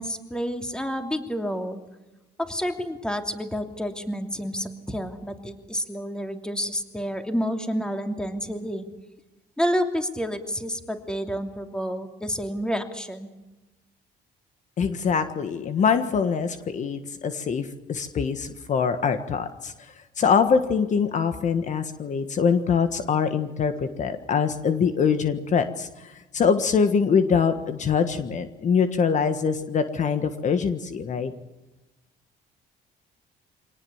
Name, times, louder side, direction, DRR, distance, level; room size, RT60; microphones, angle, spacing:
voice 1, 0.0-1.8 2.4-8.8 9.6-13.3, equal, 5° left, 5 dB, 2.8 m, -29 dB
voice 2, 14.8-19.7 20.2-31.3, left 6 dB, 45° left, 9 dB, 1.5 m, -24 dB
25.0 x 18.5 x 7.3 m, 1.0 s
cardioid pair, 110°, 17 cm